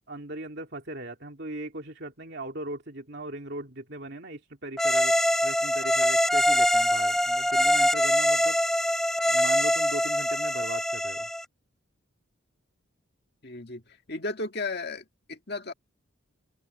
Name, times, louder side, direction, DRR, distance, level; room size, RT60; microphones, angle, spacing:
voice 1, 0.1-5.2 5.4-8.6 9.3-11.3, right 1 dB, 50° right, 2.7 m, -39 dB
sound 1, 4.8-11.4, left 1 dB, ahead, 0.4 m, -24 dB
voice 2, 13.4-13.8 14.1-15.7, left 3 dB, 50° left, 1.9 m, -34 dB
head